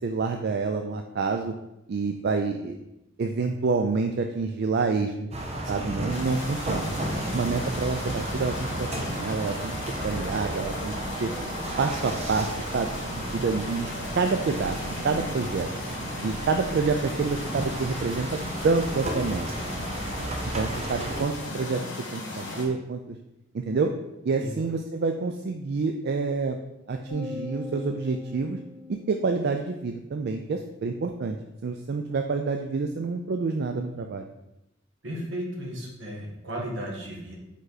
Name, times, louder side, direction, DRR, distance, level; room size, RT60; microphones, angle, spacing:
voice 1, 0.0-1.5 1.9-2.8 3.2-5.3 5.7-6.9 7.3-9.7 10.0-10.9 11.2-11.3 11.8-13.9 14.2-14.8 15.0-15.7 16.2-18.3 18.6-19.5 20.6-21.8 22.1-23.1 23.5-23.9 24.2-26.6 26.9-28.6 28.9-31.4 31.6-34.3, right 4 dB, 60° right, 5 dB, 0.4 m, -27 dB
sound 1, 5.3-21.2, right 1 dB, 35° right, 0.8 m, -33 dB
sound 2, 6.1-22.6, left 2 dB, 70° left, 1.7 m, -37 dB
sound 3, 27.1-29.6, left 4 dB, 15° left, 1.3 m, -40 dB
voice 2, 35.0-37.4, equal, 75° right, -1 dB, 1.6 m, -35 dB
5.2 x 4.9 x 4.0 m, 0.90 s
head